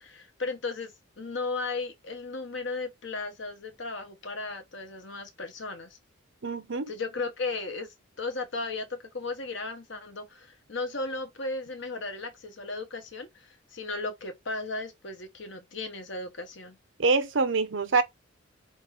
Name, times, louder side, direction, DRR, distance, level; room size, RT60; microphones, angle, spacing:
voice 1, 0.0-6.0 6.9-16.8, left 3 dB, 60° left, 1.1 m, -35 dB
voice 2, 6.4-6.9 17.0-18.0, right 4 dB, 65° right, 0.7 m, -25 dB
4.0 x 3.2 x 3.7 m
head